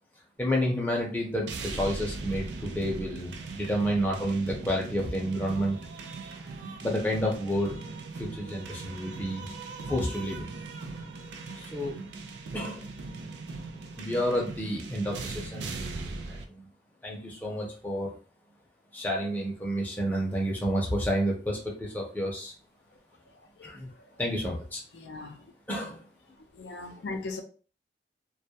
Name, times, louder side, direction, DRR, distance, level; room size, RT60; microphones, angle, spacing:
voice 1, 0.4-5.8 6.8-7.8 8.2-9.5 9.9-10.5 11.6-12.0 12.5-12.8 14.0-15.7 16.3-16.7 17.0-18.1 18.9-22.5 23.6-23.9 24.2-24.8 25.7-26.0, equal, 10° left, 0.6 m, -30 dB
sound 1, 1.5-16.4, right 3 dB, 75° right, 0.4 m, -39 dB
voice 2, 23.3-24.2 24.9-25.5 26.3-27.4, left 3 dB, 75° left, 0.4 m, -41 dB
2.3 x 2.1 x 2.7 m
head